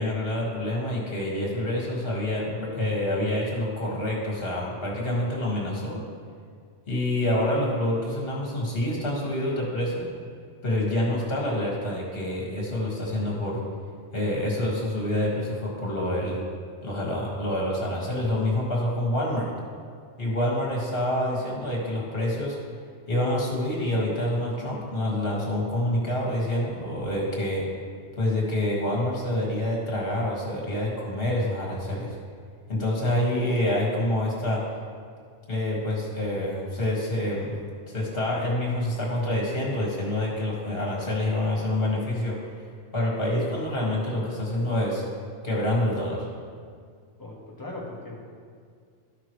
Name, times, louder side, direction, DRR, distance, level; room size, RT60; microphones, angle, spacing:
voice 1, 0.0-6.0 6.9-10.1 10.6-13.6 14.1-16.4 16.8-19.5 20.2-22.6 23.1-27.6 28.2-32.1 32.7-34.6 35.5-37.6 37.9-42.4 42.9-45.0 45.4-46.3, left 1 dB, 45° left, -3 dB, 2.0 m, -27 dB
voice 2, 47.2-48.2, left 2 dB, 15° left, -4 dB, 1.4 m, -38 dB
13.0 x 6.0 x 3.2 m, 2.1 s
omnidirectional pair, 1.3 m